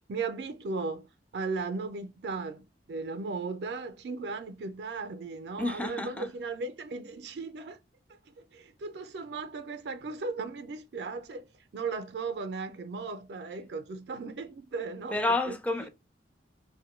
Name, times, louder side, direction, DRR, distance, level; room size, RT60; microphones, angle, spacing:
voice 1, 0.1-1.1 1.3-7.8 8.1-11.5 11.7-15.2 15.5-15.6, right 4 dB, 75° right, 0.4 m, -36 dB
voice 2, 5.6-6.3 15.1-15.9, left 2 dB, 10° left, 0.4 m, -29 dB
3.0 x 2.2 x 3.0 m
head